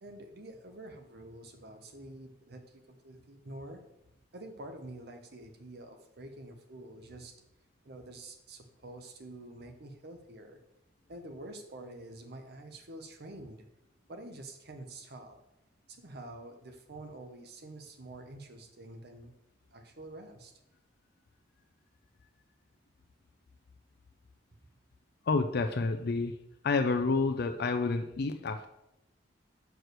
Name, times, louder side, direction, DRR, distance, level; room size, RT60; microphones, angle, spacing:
voice 1, 0.0-3.8 4.3-7.3 7.8-10.6 11.1-13.7 14.1-15.4 15.9-19.3 19.7-20.5, right 1 dB, 60° right, 5 dB, 0.9 m, -47 dB
voice 2, 25.2-26.4 26.6-28.7, left 3 dB, 60° left, 7 dB, 0.5 m, -29 dB
6.3 x 4.6 x 6.6 m, 0.85 s
head